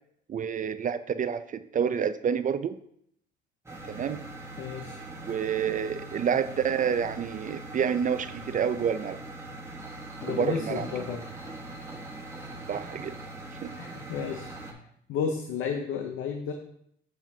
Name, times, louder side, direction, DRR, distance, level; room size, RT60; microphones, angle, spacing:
voice 1, 0.3-2.8 3.9-4.2 5.3-9.2 10.3-10.9 12.7-13.2 13.6-13.7, right 7 dB, 40° right, 12 dB, 0.4 m, -28 dB
sound 1, 3.7-14.7, right 2 dB, 15° right, 1.3 m, -41 dB
voice 2, 4.6-5.0 10.2-11.2 12.4-12.5 13.8-14.5 15.1-16.5, left 7 dB, 85° left, 5 dB, 0.7 m, -32 dB
7.3 x 7.2 x 2.7 m, 0.71 s
cardioid pair, 90°, 20 cm